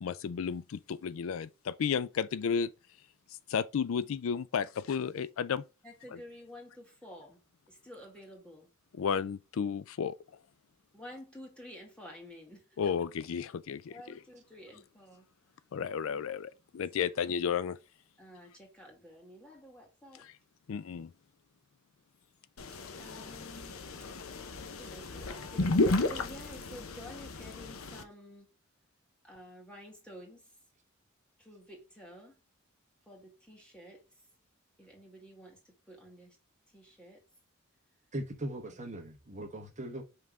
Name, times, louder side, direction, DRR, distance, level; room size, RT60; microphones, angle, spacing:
voice 1, 0.0-2.7 3.5-5.6 6.1-6.2 8.9-10.1 12.8-14.2 15.7-17.8 20.2-20.3 20.7-21.1, left 7 dB, 70° left, 0.4 m, -33 dB
voice 2, 5.8-8.7 10.9-12.9 13.9-15.3 16.9-17.3 18.2-20.3 23.0-23.9 24.6-28.5 29.2-30.4 31.4-32.4 33.1-34.0 34.8-36.4 36.7-37.2, equal, 5° left, 2.3 m, -51 dB
sound 1, 22.6-28.0, left 2 dB, 85° left, 0.8 m, -33 dB
voice 3, 38.1-40.0, right 1 dB, 35° right, 1.2 m, -39 dB
5.5 x 3.8 x 4.7 m
head